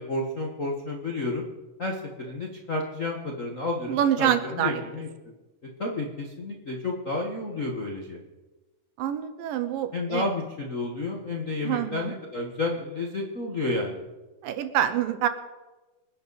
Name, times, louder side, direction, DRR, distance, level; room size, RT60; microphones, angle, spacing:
voice 1, 0.0-1.4 1.8-5.1 5.8-8.2 9.9-14.0, left 2 dB, 75° left, -1 dB, 0.7 m, -31 dB
voice 2, 3.9-4.8 9.0-10.3 11.6-12.1 14.4-15.3, right 10 dB, 80° right, 10 dB, 2.6 m, -26 dB
26.0 x 10.0 x 4.1 m, 1.2 s
omnidirectional pair, 3.9 m